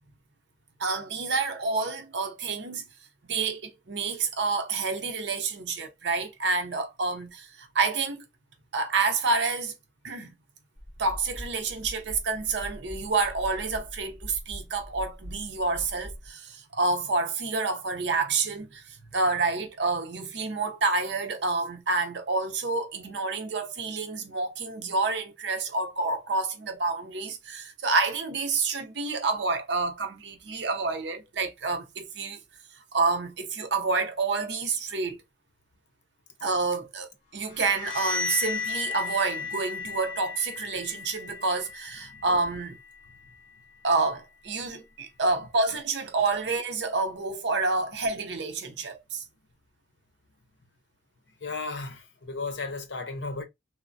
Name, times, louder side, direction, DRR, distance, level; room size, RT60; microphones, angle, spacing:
voice 1, 0.8-2.9 3.2-8.2 8.7-9.7 10.0-10.3 11.0-32.4 32.9-35.2 36.4-42.8 43.8-49.2, right 3 dB, 70° right, 0.6 m, -28 dB
sound 1, 10.8-16.3, equal, 5° left, 1.4 m, -42 dB
sound 2, 37.5-43.1, left 5 dB, 25° left, 1.8 m, -35 dB
voice 2, 51.4-53.4, left 3 dB, 75° left, 0.7 m, -34 dB
3.1 x 2.0 x 2.6 m
head